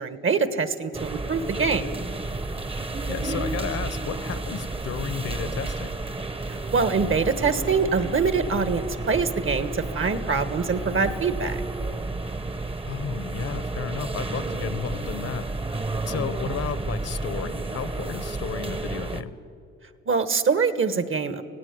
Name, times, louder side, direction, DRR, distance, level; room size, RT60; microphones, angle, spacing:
voice 1, 0.0-1.9 6.5-11.6 20.1-21.4, right 5 dB, 45° right, 12 dB, 1.3 m, -24 dB
sound 1, 0.9-19.2, right 2 dB, 20° right, 1.0 m, -31 dB
voice 2, 3.1-5.9 12.8-15.5 16.1-19.3, left 7 dB, 55° left, 15 dB, 1.0 m, -33 dB
17.5 x 16.0 x 9.6 m, 2.5 s
cardioid pair, 90°, 30 cm